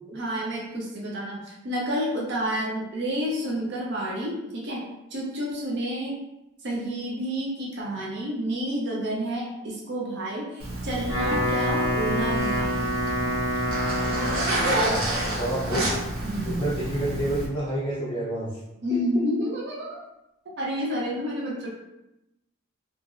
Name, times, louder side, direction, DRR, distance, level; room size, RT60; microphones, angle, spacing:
voice 1, 0.1-4.8 5.1-6.1 6.6-12.8 13.2-13.4 13.6-13.7 16.2-16.6 18.8-20.0 20.6-21.7, equal, 55° right, -3 dB, 0.5 m, -30 dB
Zipper (clothing), 10.6-17.5, right 1 dB, 85° right, 0.9 m, -29 dB
Wind instrument woodwind instrument, 10.9-14.8, equal, 30° right, 1.4 m, -27 dB
voice 2, 15.3-15.9 16.4-18.6 18.9-19.2, right 1 dB, 25° left, -7 dB, 0.5 m, -29 dB
2.9 x 2.5 x 2.4 m, 0.91 s
head